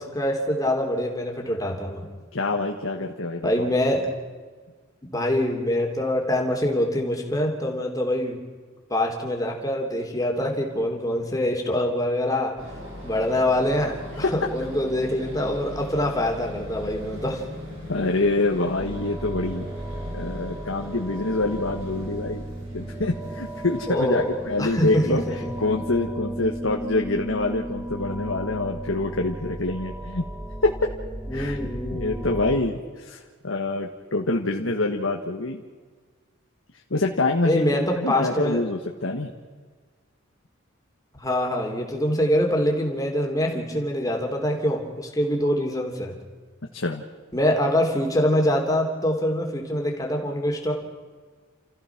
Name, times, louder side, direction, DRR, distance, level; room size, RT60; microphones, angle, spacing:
voice 1, 0.0-2.0 3.4-4.1 5.1-8.4 8.9-12.5 13.0-17.4 23.9-25.5 31.3-32.3 37.4-38.6 41.1-46.2 47.3-50.7, left 1 dB, 20° left, 1 dB, 3.1 m, -24 dB
voice 2, 2.3-3.7 17.9-19.7 20.1-22.4 22.7-30.2 30.6-30.7 31.3-31.6 31.9-35.6 36.9-37.7 38.0-39.3 46.7-47.0, left 2 dB, 80° left, 1 dB, 1.5 m, -26 dB
sound 1, 12.6-25.7, left 1 dB, 80° right, 6.0 m, -40 dB
sound 2, 18.8-32.6, right 1 dB, 5° right, 1.0 m, -35 dB
29.5 x 15.0 x 6.0 m, 1.5 s
head